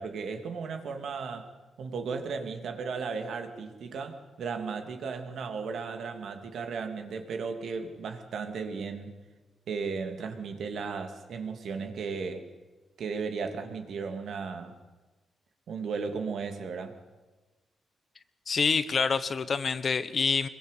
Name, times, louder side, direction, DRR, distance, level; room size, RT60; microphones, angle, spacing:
voice 1, 0.0-1.5 1.8-9.1 9.7-12.5 13.0-14.8 15.7-17.0, right 5 dB, 70° right, 6 dB, 2.9 m, -35 dB
voice 2, 18.5-20.5, left 5 dB, 40° left, 13 dB, 1.2 m, -27 dB
24.5 x 22.5 x 8.5 m, 1.2 s
cardioid pair, 130°, 0 cm